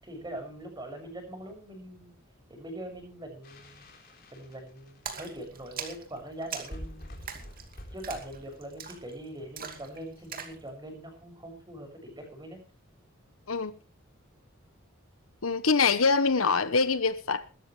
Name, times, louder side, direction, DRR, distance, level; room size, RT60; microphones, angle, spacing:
voice 1, 0.0-2.1 2.5-3.9 4.3-7.4 7.9-12.6, right 1 dB, 20° right, 6.8 m, -42 dB
sound 1, 3.4-5.3 6.0-6.1 6.3-6.4 6.5-9.7, equal, 45° left, 4.0 m, -47 dB
Splash splatter, 5.1-10.6, right 6 dB, 45° right, 2.5 m, -42 dB
voice 2, 15.4-17.5, left 4 dB, 80° left, 1.1 m, -24 dB
21.0 x 13.0 x 3.3 m
head